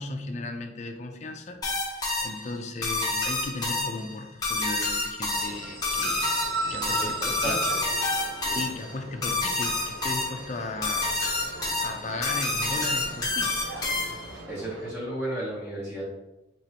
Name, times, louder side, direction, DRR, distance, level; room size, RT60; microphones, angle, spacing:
voice 1, 0.0-1.6 1.9-6.3 6.7-7.6 8.4-11.2 11.8-13.5, left 3 dB, 40° left, 5 dB, 0.4 m, -36 dB
sound 1, 1.6-14.4, left 2 dB, 20° left, 0.8 m, -29 dB
sound 2, 5.3-14.9, right 3 dB, 85° right, 0.6 m, -37 dB
voice 2, 6.8-7.8 8.4-8.6 14.5-16.1, right 1 dB, 10° right, -8 dB, 0.7 m, -34 dB
4.4 x 3.0 x 2.8 m, 0.94 s
head